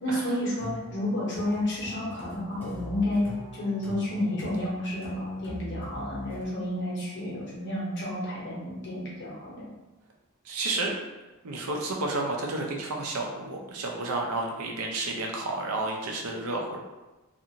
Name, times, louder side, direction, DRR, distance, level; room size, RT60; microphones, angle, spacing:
voice 1, 0.0-9.7, left 1 dB, 55° left, -6 dB, 1.0 m, -31 dB
sound 1, 0.6-6.4, equal, 10° left, 0.6 m, -40 dB
voice 2, 10.4-10.9 11.4-16.8, right 2 dB, 75° right, 1 dB, 0.5 m, -31 dB
2.5 x 2.5 x 2.8 m, 1.1 s
head